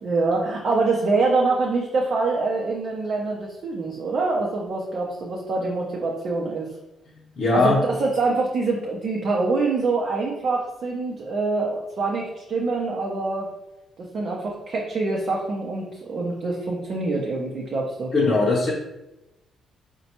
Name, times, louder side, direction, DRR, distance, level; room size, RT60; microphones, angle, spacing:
voice 1, 0.0-6.7 7.5-13.5 14.1-18.1, right 3 dB, 55° right, -2 dB, 0.6 m, -25 dB
voice 2, 7.4-7.8 18.1-18.7, left 3 dB, 45° left, -6 dB, 0.7 m, -19 dB
4.1 x 2.2 x 2.9 m, 0.97 s
cardioid pair, 90°, 0 cm